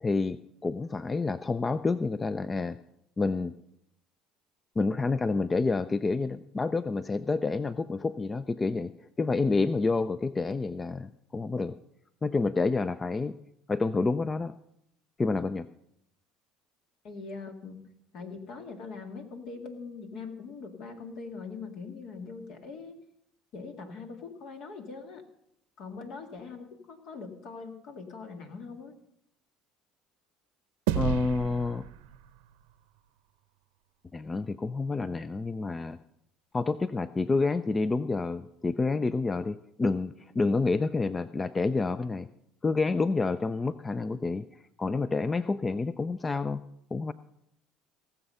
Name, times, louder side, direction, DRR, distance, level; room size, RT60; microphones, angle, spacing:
voice 1, 0.0-2.8 3.2-3.5 4.8-8.9 9.2-11.8 12.2-13.3 13.7-14.5 15.2-15.7 30.9-31.9 34.1-36.0 36.5-42.3 42.6-46.6 46.9-47.1, left 3 dB, 25° left, 15 dB, 0.4 m, -28 dB
voice 2, 17.0-17.8 18.1-22.9 23.5-25.2 25.8-28.9, left 4 dB, 60° left, 5 dB, 2.0 m, -42 dB
sound 1, 30.9-33.5, right 11 dB, 85° right, 0.7 m, -33 dB
18.0 x 7.1 x 5.5 m, 0.77 s
supercardioid pair, 80°, 0 cm